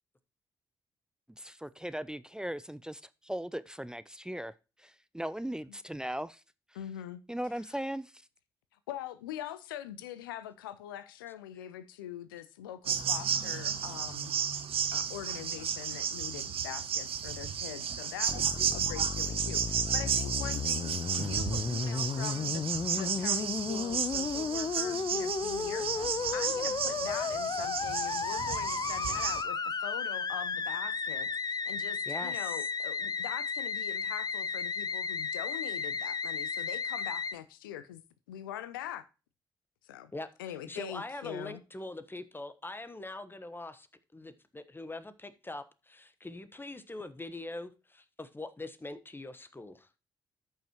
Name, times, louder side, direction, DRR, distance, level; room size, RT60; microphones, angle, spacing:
voice 1, 1.4-4.5 4.8-6.4 7.3-8.1, right 1 dB, 5° right, 0.5 m, -38 dB
voice 2, 6.7-7.2 8.9-14.3 14.9-22.6 23.0-38.0 38.3-39.0 39.8-40.1 40.4-41.6, left 11 dB, 90° left, 0.5 m, -43 dB
sound 1, 12.9-29.4, right 8 dB, 55° right, 0.9 m, -33 dB
Musical instrument, 18.3-37.3, left 5 dB, 35° left, 0.8 m, -34 dB
voice 3, 32.1-32.7 40.1-43.9 44.1-49.9, left 2 dB, 20° left, 1.2 m, -43 dB
13.5 x 5.6 x 3.0 m
hypercardioid pair, 40°, 11 cm